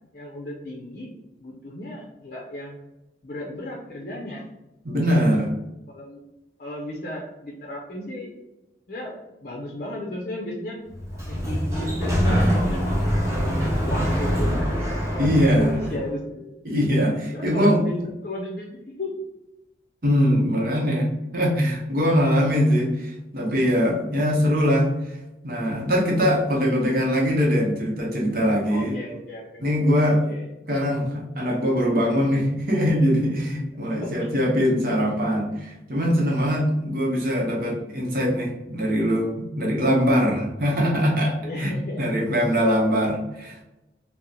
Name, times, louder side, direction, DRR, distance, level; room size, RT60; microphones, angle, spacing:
voice 1, 0.1-1.1 1.4-2.8 3.2-4.5 5.9-6.2 6.6-8.3 8.9-10.8 11.3-13.3 13.8-14.8 15.1-16.6 17.3-17.9 18.2-19.1 20.9-21.0 28.6-30.5 33.9-34.2 41.4-42.0, left 1 dB, 45° left, -2 dB, 0.5 m, -35 dB
voice 2, 4.8-5.5 15.2-15.8 16.6-18.0 20.0-25.2 25.4-29.0 29.6-30.2 30.7-41.7 42.0-43.6, equal, 55° right, -1 dB, 0.7 m, -22 dB
Sliding door, 10.9-16.0, equal, 15° right, 0.8 m, -24 dB
2.8 x 2.0 x 3.7 m, 0.93 s
head